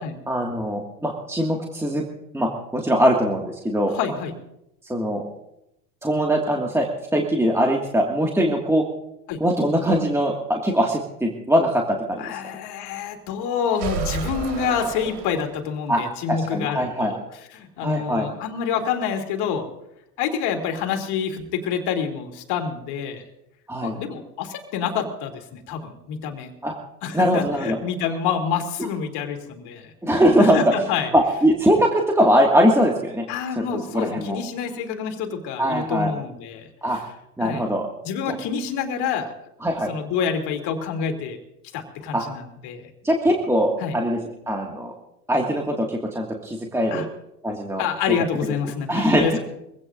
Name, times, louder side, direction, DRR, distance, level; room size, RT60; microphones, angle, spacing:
voice 1, 0.3-2.0 2.3-4.0 4.8-5.2 6.0-8.8 9.4-12.4 15.9-16.0 16.3-17.1 17.8-18.3 23.7-24.0 26.6-26.7 27.1-27.8 30.0-30.6 31.1-33.3 33.6-33.7 33.9-34.4 35.6-36.1 36.8-37.0 37.4-37.9 38.3-38.4 39.6-39.9 42.1-42.2 43.0-44.2 44.5-44.9 45.3-47.1 47.4-48.2 48.9-49.4, equal, 5° right, 0 dB, 2.0 m, -21 dB
voice 2, 3.9-4.3 9.3-9.4 12.2-17.2 17.5-19.7 20.2-23.2 23.8-26.5 27.0-29.9 30.4-31.1 33.3-37.0 37.4-37.6 38.0-39.3 39.9-41.4 41.7-42.9 43.8-43.9 46.9-47.0 47.8-49.4, left 7 dB, 55° left, 4 dB, 2.9 m, -27 dB
sound 1, 13.7-15.8, right 4 dB, 65° right, 4.1 m, -31 dB
24.0 x 16.5 x 2.6 m, 0.84 s
hypercardioid pair, 85°, 48 cm